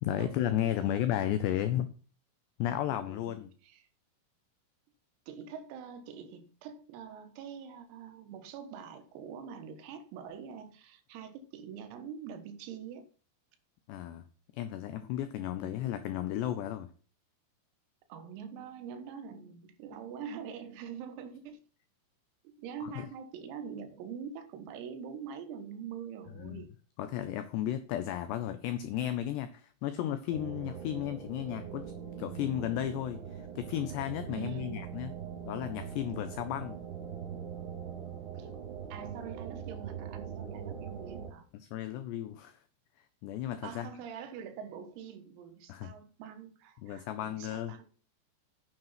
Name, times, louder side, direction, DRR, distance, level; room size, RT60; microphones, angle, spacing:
voice 1, 0.0-1.9 2.6-3.5 13.9-14.2 14.5-16.9 22.8-23.1 26.4-26.6 27.0-31.9 32.2-35.1 35.4-36.8 41.5-42.6 43.2-43.9 45.7-45.9 46.8-47.8, left 11 dB, 85° left, 2.4 m, -34 dB
voice 2, 0.8-1.1 2.9-3.9 5.3-13.1 15.6-15.8 18.1-21.6 22.5-26.7 34.3-35.1 38.4-38.5 38.9-41.5 43.6-47.8, right 7 dB, 90° right, 4.2 m, -44 dB
sound 1, 30.3-41.3, right 8 dB, 65° right, 4.8 m, -42 dB
9.4 x 7.5 x 5.7 m
omnidirectional pair, 5.9 m